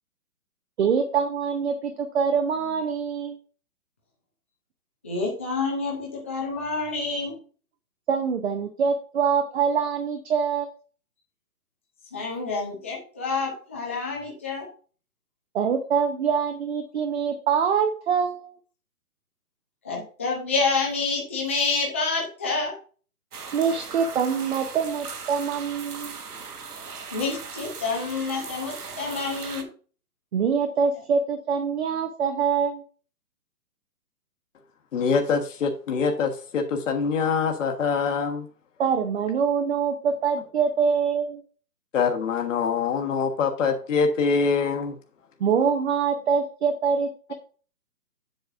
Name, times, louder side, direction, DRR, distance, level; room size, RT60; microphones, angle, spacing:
voice 1, 0.8-3.4 8.1-10.7 15.5-18.5 23.5-26.2 30.3-32.8 38.8-41.4 45.4-47.3, right 6 dB, 45° right, 0.9 m, -24 dB
voice 2, 5.0-7.4 12.1-14.7 19.8-22.7 27.1-29.7, left 4 dB, 10° left, 0.5 m, -28 dB
sound 1, 23.3-29.6, right 5 dB, 80° right, 1.6 m, -38 dB
voice 3, 34.9-38.5 41.9-45.0, left 5 dB, 55° left, 1.4 m, -24 dB
7.9 x 7.3 x 2.5 m
hypercardioid pair, 145°, 46 cm